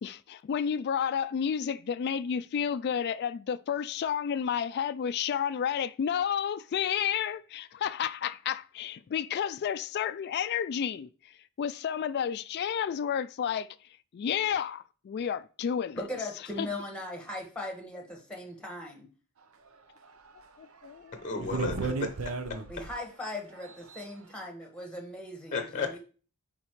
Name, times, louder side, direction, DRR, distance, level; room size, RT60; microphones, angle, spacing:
voice 1, 0.0-13.8 14.1-16.0 16.6-16.7 20.6-21.4, left 8 dB, 50° left, 0.3 m, -31 dB
voice 2, 15.9-19.1 22.7-26.0, left 1 dB, 5° left, 1.6 m, -39 dB
sound 1, 20.3-20.4 20.8-20.9 21.4-23.0 23.6-24.0, right 3 dB, 80° right, 0.8 m, -33 dB
voice 3, 21.2-22.6 25.5-26.0, left 4 dB, 35° left, 0.8 m, -34 dB
9.6 x 4.2 x 3.1 m
head